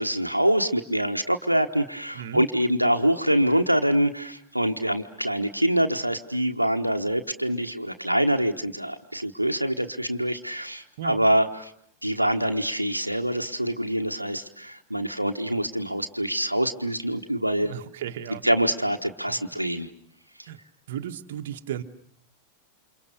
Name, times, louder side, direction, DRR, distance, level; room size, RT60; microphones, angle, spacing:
voice 1, 0.0-11.7 12.0-17.7 18.4-19.9 20.4-20.5, right 1 dB, 90° right, 5 dB, 1.3 m, -25 dB
voice 2, 17.6-18.4 19.3-19.4 20.5-20.6 20.9-21.8, right 10 dB, 55° right, 6 dB, 1.5 m, -35 dB
29.5 x 28.0 x 6.7 m, 0.65 s
figure-of-eight pair, 90°, 0 cm